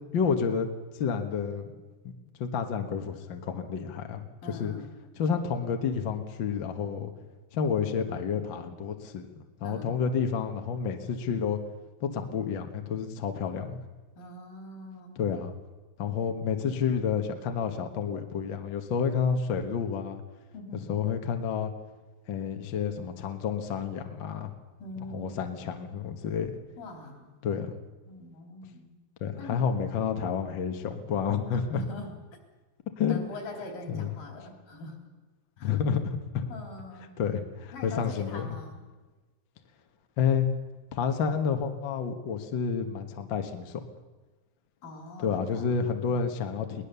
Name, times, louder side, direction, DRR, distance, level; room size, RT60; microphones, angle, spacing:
voice 1, 0.1-0.7 0.9-1.7 2.4-4.2 4.6-4.7 5.2-7.1 7.5-9.3 9.6-11.6 12.0-13.8 15.2-15.5 16.0-20.2 20.9-21.7 22.3-24.5 25.1-26.5 27.4-27.8 29.2-31.8 33.0-33.2 33.9-34.1 35.6-36.5 37.2-38.6 40.2-40.4 40.9-43.8 45.2-46.8, left 6 dB, 55° left, 5 dB, 1.4 m, -29 dB
voice 2, 4.4-4.9 9.6-10.0 14.2-15.3 20.5-20.9 24.8-25.4 26.8-27.3 28.1-28.9 29.4-29.6 30.0-30.3 31.5-32.1 33.1-35.1 35.6-35.8 36.5-37.2 37.7-38.8 44.8-45.8, left 1 dB, 70° left, 3 dB, 5.1 m, -43 dB
22.5 x 18.5 x 6.9 m, 1.2 s
omnidirectional pair, 4.1 m